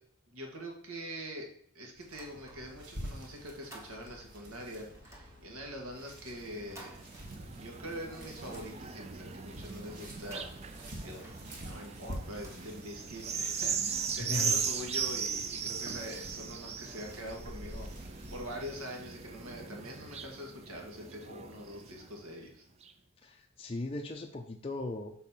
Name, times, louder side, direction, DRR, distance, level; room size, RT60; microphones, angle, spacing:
voice 1, 0.3-1.5 1.7-7.0 7.5-10.5 11.0-11.2 11.6-22.7, equal, 75° right, 1 dB, 1.8 m, -44 dB
sound 1, 2.0-3.0 3.3-4.4 4.9-7.8 8.1-9.3 10.1-13.2, right 1 dB, 15° right, 1.0 m, -56 dB
sound 2, 2.0-18.6, equal, 50° right, 1.7 m, -48 dB
sound 3, 6.4-22.2 22.8-22.9, right 6 dB, 30° right, 0.4 m, -38 dB
voice 2, 14.2-14.6 23.2-25.1, left 2 dB, 25° left, 2 dB, 0.5 m, -38 dB
6.5 x 4.2 x 5.6 m, 0.63 s
head